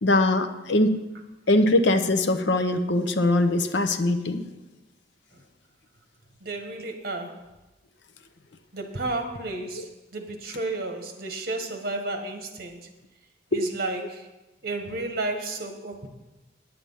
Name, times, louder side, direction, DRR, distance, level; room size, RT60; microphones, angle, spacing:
voice 1, 0.0-1.0 1.5-4.4 13.5-13.6, left 2 dB, 65° left, 8 dB, 0.7 m, -22 dB
voice 2, 6.4-7.4 8.7-12.8 13.5-14.3 14.6-16.1, right 2 dB, 50° right, 4 dB, 1.5 m, -32 dB
9.7 x 8.7 x 5.6 m, 1.0 s
head